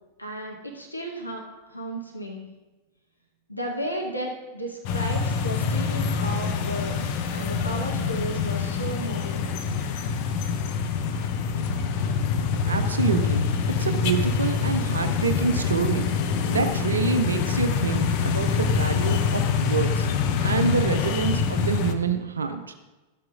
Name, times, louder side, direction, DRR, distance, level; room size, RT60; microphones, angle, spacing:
voice 1, 0.2-1.4 1.7-2.5 3.5-9.5, equal, 85° left, 1 dB, 0.9 m, -34 dB
sound 1, 4.8-21.9, left 5 dB, 45° left, 0.7 m, -25 dB
voice 2, 12.6-13.5 13.8-16.1 16.5-20.1 20.4-22.7, right 5 dB, 70° right, 8 dB, 0.5 m, -27 dB
13.5 x 7.7 x 2.4 m, 1.1 s
figure-of-eight pair, 90°, 0 cm